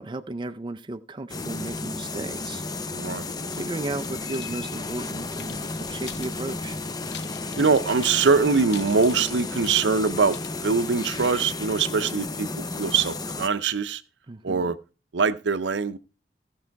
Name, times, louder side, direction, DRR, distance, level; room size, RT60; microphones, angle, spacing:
voice 1, 0.0-2.6 3.5-6.8 14.3-14.7, right 2 dB, 25° right, 0.5 m, -34 dB
sound 1, 1.3-13.5, left 3 dB, 25° left, 0.6 m, -33 dB
voice 2, 2.9-3.3 7.5-14.0 14.4-14.8 15.1-16.0, right 5 dB, 80° right, 0.6 m, -23 dB
sound 2, 4.0-11.5, left 9 dB, 70° left, 0.8 m, -47 dB
15.5 x 5.5 x 4.6 m
head